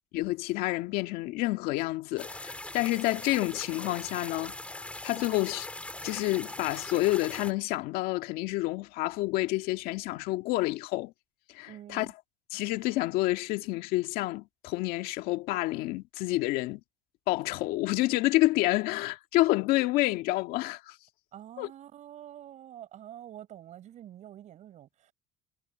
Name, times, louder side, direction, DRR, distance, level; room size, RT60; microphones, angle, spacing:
voice 1, 0.1-5.7 6.0-11.1 11.5-12.1 12.5-16.8 17.3-21.0 21.6-21.7, left 18 dB, 65° left, 1.9 m, -29 dB
sound 1, 2.2-7.5, left 2 dB, 10° left, 2.9 m, -41 dB
voice 2, 11.7-12.1 21.3-25.1, right 11 dB, 45° right, 7.6 m, -47 dB
supercardioid pair, 115°, 16 cm